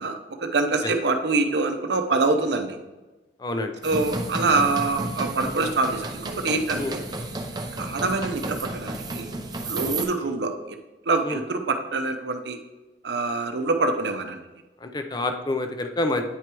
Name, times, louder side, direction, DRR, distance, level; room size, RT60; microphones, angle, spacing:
voice 1, 0.0-2.8 3.8-7.0 7.8-9.3 9.7-10.8 11.1-12.6 13.0-14.4, right 3 dB, 70° right, 6 dB, 0.7 m, -25 dB
voice 2, 3.4-3.8 6.8-7.0 9.8-10.0 10.2-10.3 11.2-11.4 14.8-16.2, left 2 dB, 25° left, 6 dB, 0.5 m, -28 dB
sound 1, 3.8-10.1, right 2 dB, 25° right, 0.6 m, -32 dB
9.2 x 4.7 x 3.0 m, 1.2 s
head